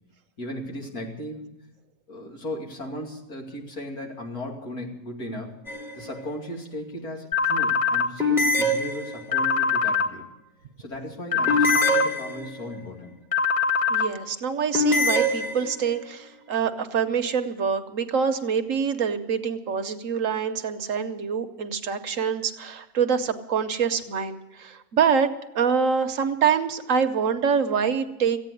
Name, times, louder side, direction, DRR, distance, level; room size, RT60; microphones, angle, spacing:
voice 1, 0.4-1.5 2.1-5.6 5.9-10.2 10.8-13.1, left 1 dB, 80° left, -1 dB, 3.2 m, -36 dB
sound 1, 5.7-6.2 8.2-9.5 11.5-12.8 14.7-16.0, left 1 dB, ahead, 1.0 m, -24 dB
sound 2, 7.3-8.1 9.3-10.1 11.3-12.1 13.3-14.1, left 5 dB, 25° left, 1.0 m, -22 dB
voice 2, 13.9-28.4, right 6 dB, 60° right, 8 dB, 1.2 m, -25 dB
15.0 x 9.2 x 9.7 m, 0.93 s
omnidirectional pair, 1.6 m